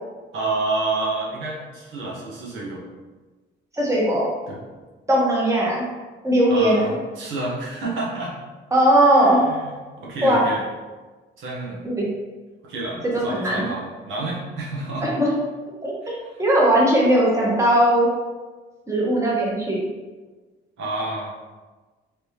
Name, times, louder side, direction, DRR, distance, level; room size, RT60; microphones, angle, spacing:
voice 1, 0.3-2.8 4.5-4.6 6.5-8.3 9.1-9.7 10.0-10.6 11.4-11.8 12.6-15.1 16.0-16.2 20.8-21.4, right 2 dB, 80° right, -5 dB, 1.0 m, -29 dB
voice 2, 3.7-4.2 5.1-5.9 6.2-6.8 8.7-9.4 10.2-10.4 11.8-12.1 13.1-13.7 15.0-15.3 15.8-18.1 18.9-19.8, right 1 dB, 15° right, -5 dB, 1.1 m, -19 dB
3.3 x 3.3 x 2.9 m, 1.3 s
cardioid pair, 90°, 20 cm